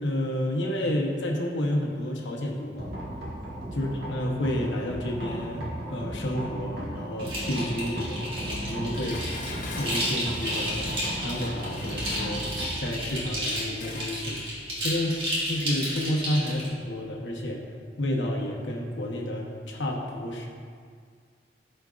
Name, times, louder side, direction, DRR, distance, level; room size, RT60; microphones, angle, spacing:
voice 1, 0.0-2.9 3.7-12.4 12.8-14.4 14.8-15.1 15.4-17.6 18.0-20.5, left 1 dB, 85° left, -1 dB, 1.0 m, -30 dB
sound 1, 2.8-16.6, equal, 60° right, 1.5 m, -37 dB
sound 2, 7.2-16.7, equal, 30° right, 1.7 m, -32 dB
Dishes pots and pans, 8.9-14.2 14.6-14.7, left 3 dB, 45° left, 0.6 m, -43 dB
13.0 x 4.5 x 2.5 m, 2.1 s
head